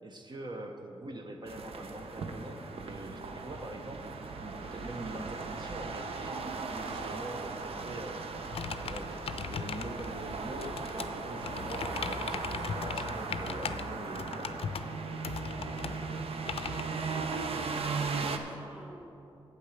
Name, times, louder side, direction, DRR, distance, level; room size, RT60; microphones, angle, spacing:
voice 1, 0.0-6.4 6.7-8.2 8.8-14.6, right 1 dB, 50° right, 4 dB, 1.0 m, -43 dB
sound 1, 1.5-18.4, right 4 dB, 90° right, 0.7 m, -38 dB
sound 2, 8.5-16.8, left 6 dB, 80° left, 0.4 m, -39 dB
voice 2, 17.1-19.1, right 1 dB, 10° right, 4 dB, 0.8 m, -51 dB
8.8 x 8.1 x 6.5 m, 3.0 s
cardioid pair, 70°, 10 cm